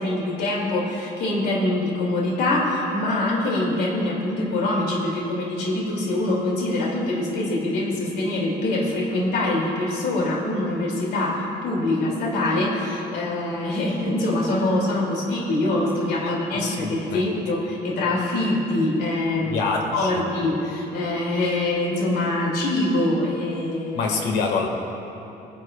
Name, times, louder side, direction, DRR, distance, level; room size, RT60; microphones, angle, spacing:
voice 1, 0.0-24.0, left 2 dB, 70° left, -3 dB, 2.7 m, -24 dB
voice 2, 16.2-17.2 19.5-20.2 23.9-24.7, left 4 dB, 90° left, 2 dB, 1.8 m, -26 dB
22.5 x 10.5 x 2.4 m, 2.9 s
cardioid pair, 110°, 17 cm